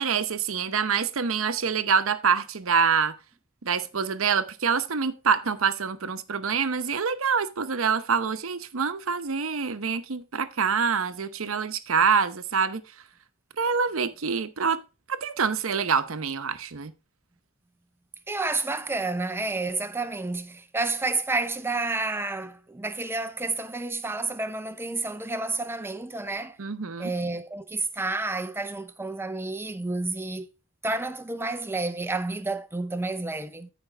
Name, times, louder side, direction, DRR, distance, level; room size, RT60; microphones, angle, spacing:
voice 1, 0.0-3.1 3.6-12.8 13.6-14.8 15.1-16.9 26.6-27.1, right 6 dB, 75° right, 0.8 m, -26 dB
voice 2, 18.3-26.6 27.0-30.5 30.8-33.7, right 3 dB, 10° right, 0.7 m, -30 dB
14.0 x 5.1 x 3.3 m
head